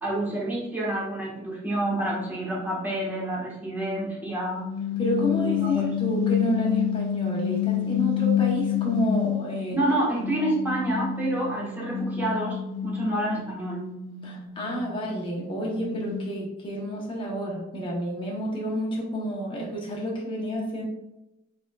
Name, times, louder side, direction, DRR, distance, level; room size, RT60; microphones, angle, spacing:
voice 1, 0.0-4.7 5.3-5.9 9.7-13.8, right 1 dB, 10° right, -6 dB, 1.3 m, -28 dB
sound 1, 4.6-9.9 10.2-16.4, left 10 dB, 70° left, 0.4 m, -29 dB
voice 2, 5.0-9.8 14.2-20.9, equal, 25° left, -3 dB, 0.9 m, -29 dB
5.0 x 3.6 x 2.3 m, 0.94 s
head